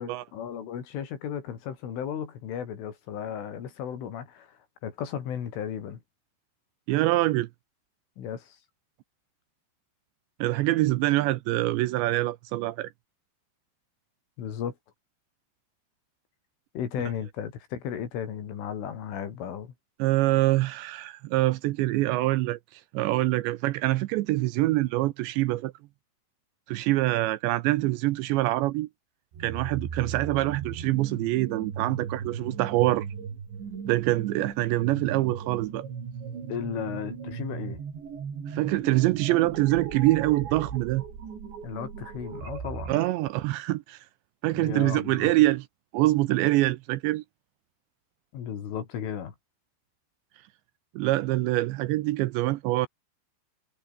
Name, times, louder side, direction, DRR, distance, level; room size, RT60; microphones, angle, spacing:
voice 1, 0.0-6.0 8.2-8.6 14.4-14.8 16.8-19.7 36.5-37.8 41.6-43.0 44.6-45.3 48.3-49.4, left 8 dB, 80° left, 6.0 m, -35 dB
voice 2, 6.9-7.5 10.4-12.9 20.0-25.7 26.7-28.9 29.4-33.1 33.9-35.8 38.5-41.0 42.9-44.0 44.4-45.6 45.9-47.2 51.0-52.9, right 18 dB, 80° right, 2.8 m, -25 dB
sound 1, 29.3-43.1, right 6 dB, 65° right, 7.1 m, -38 dB
omnidirectional pair, 5.6 m